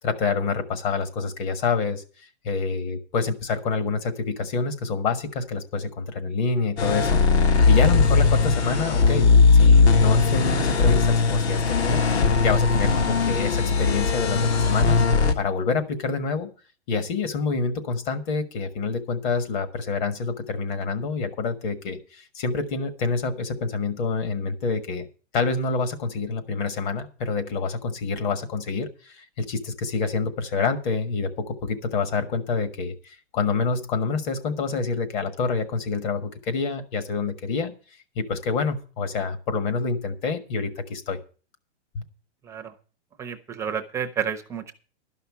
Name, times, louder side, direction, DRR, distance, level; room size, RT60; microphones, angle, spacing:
voice 1, 0.0-16.5 16.9-25.1 25.3-37.7 38.1-41.2 41.9-42.0, left 4 dB, 45° left, 9 dB, 1.5 m, -27 dB
sound 1, 6.8-15.3, left 4 dB, 65° left, 1.7 m, -19 dB
voice 2, 43.2-44.7, right 7 dB, 10° right, 6 dB, 0.5 m, -30 dB
12.0 x 5.7 x 8.3 m, 0.37 s
supercardioid pair, 160°, 35 cm